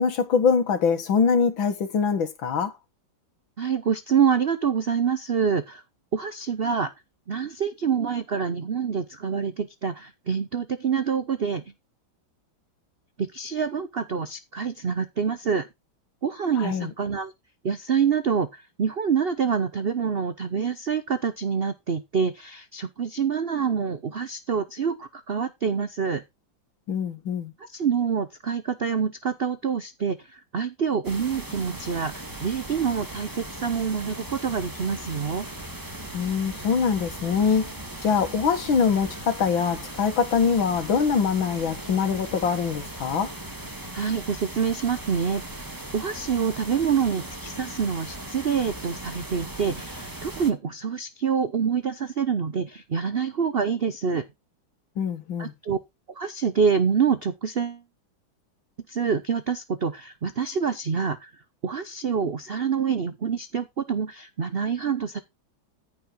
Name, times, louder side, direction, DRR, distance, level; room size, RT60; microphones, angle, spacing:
voice 1, 0.0-2.7 16.6-16.9 26.9-27.5 36.1-37.7 38.0-43.3 55.0-55.5, left 6 dB, 80° left, 2.4 m, -23 dB
voice 2, 3.6-5.8 6.1-6.9 7.3-11.6 13.2-15.7 16.2-17.3 17.6-26.2 27.6-32.1 32.4-35.5 43.9-45.4 45.9-54.2 55.4-55.8 56.2-57.8 58.9-61.3 61.6-65.2, right 6 dB, 65° right, 0.5 m, -26 dB
sound 1, 31.0-50.5, right 1 dB, 10° right, 1.5 m, -38 dB
14.5 x 5.6 x 4.5 m
omnidirectional pair, 2.1 m